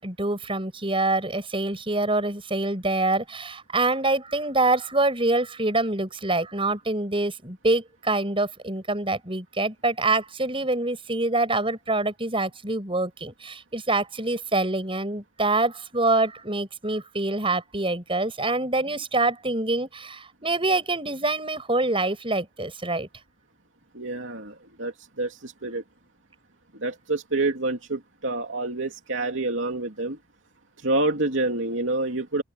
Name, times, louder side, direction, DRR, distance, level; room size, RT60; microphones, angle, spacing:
voice 1, 0.0-23.1, right 2 dB, 25° right, 7.4 m, -25 dB
voice 2, 23.9-24.9 25.2-25.8 26.8-30.2 30.8-32.4, right 2 dB, 75° right, 2.8 m, -27 dB
open air
head